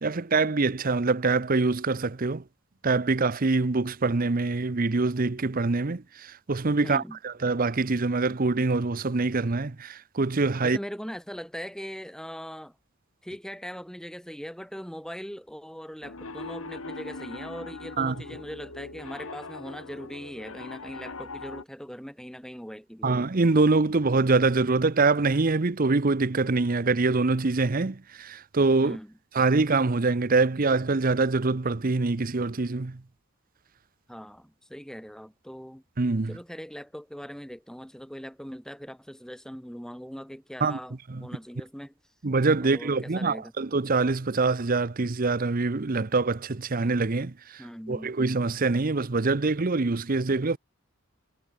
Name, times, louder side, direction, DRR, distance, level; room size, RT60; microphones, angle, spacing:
voice 1, 0.0-2.4 2.8-10.8 18.0-18.2 23.0-29.0 29.3-33.0 36.0-36.4 40.6-40.8 41.1-41.3 42.2-50.6, right 3 dB, 40° right, 0.7 m, -24 dB
voice 2, 6.8-7.2 10.6-12.7 13.2-23.2 28.8-29.1 34.1-35.8 36.3-40.9 41.2-41.9 42.6-43.5 47.6-48.1, equal, 5° left, 6.5 m, -40 dB
Piano, 16.0-21.6, left 3 dB, 85° left, 2.2 m, -41 dB
head